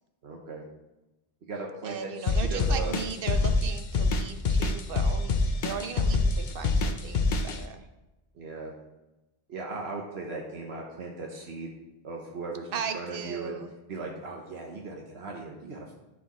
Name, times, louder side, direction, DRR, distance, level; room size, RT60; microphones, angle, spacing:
voice 1, 0.2-0.6 1.5-2.9 8.3-8.7 9.5-11.7 12.0-13.6 13.9-15.9, right 3 dB, 80° right, -1 dB, 1.3 m, -38 dB
voice 2, 1.8-7.8 12.7-13.7, right 6 dB, 60° right, 8 dB, 0.9 m, -37 dB
sound 1, 2.3-7.6, left 3 dB, 50° left, 0.8 m, -25 dB
13.0 x 4.9 x 3.1 m, 1.0 s
omnidirectional pair, 1.1 m